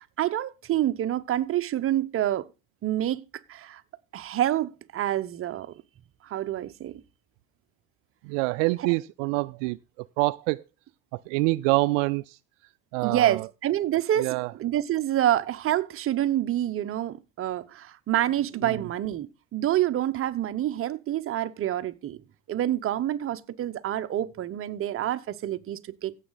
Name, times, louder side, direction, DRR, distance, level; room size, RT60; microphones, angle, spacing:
voice 1, 0.0-2.4 2.8-3.2 3.5-3.8 4.1-5.7 6.2-7.0 13.0-22.2 22.5-26.2, right 12 dB, 35° right, 0.9 m, -27 dB
voice 2, 8.2-10.6 11.1-12.4 12.9-13.5 14.2-14.5 18.6-18.8, right 23 dB, 70° right, 0.5 m, -26 dB
16.0 x 7.4 x 4.0 m
supercardioid pair, 110°, 38 cm